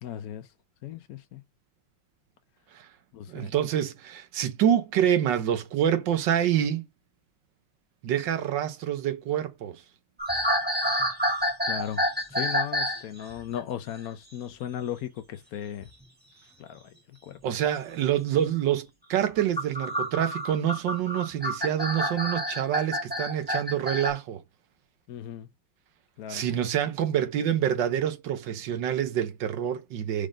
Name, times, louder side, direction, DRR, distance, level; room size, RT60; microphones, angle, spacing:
voice 1, 0.0-0.5 0.8-1.4 3.1-3.5 11.7-12.0 12.3-15.9 16.6-17.4 25.1-25.5 26.2-26.4, left 10 dB, 70° left, 0.9 m, -36 dB
voice 2, 3.3-6.8 8.0-9.8 17.4-24.4 26.3-30.3, right 10 dB, 65° right, 1.3 m, -27 dB
sound 1, 10.2-13.0 13.3-13.6 15.8-16.0 17.3-17.4 19.3-24.1, equal, 5° right, 1.6 m, -28 dB
5.2 x 3.6 x 4.9 m
omnidirectional pair, 2.3 m